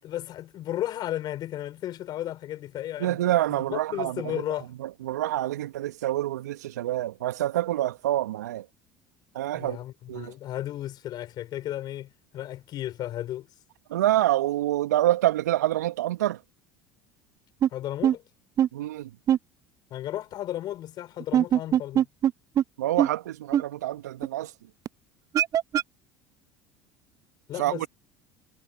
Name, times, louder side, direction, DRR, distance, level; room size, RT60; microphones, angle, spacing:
voice 1, 0.0-3.2 3.5-4.7 9.5-13.5 17.7-18.2 19.9-22.1 27.5-27.9, left 13 dB, 50° left, 5.6 m, -34 dB
voice 2, 3.0-4.4 4.8-8.7 9.3-9.8 10.1-10.3 13.9-16.4 18.7-19.1 22.8-24.5 27.6-27.9, right 14 dB, 75° right, 2.3 m, -27 dB
sound 1, 17.6-17.7 18.0-18.1 18.6-18.7 19.3-19.4 21.2-22.3 22.6-22.7 23.0-23.1 23.5-23.6 24.2-24.3 24.8-24.9 25.3-25.8, right 10 dB, 40° right, 0.6 m, -21 dB
hypercardioid pair, 65°, 9 cm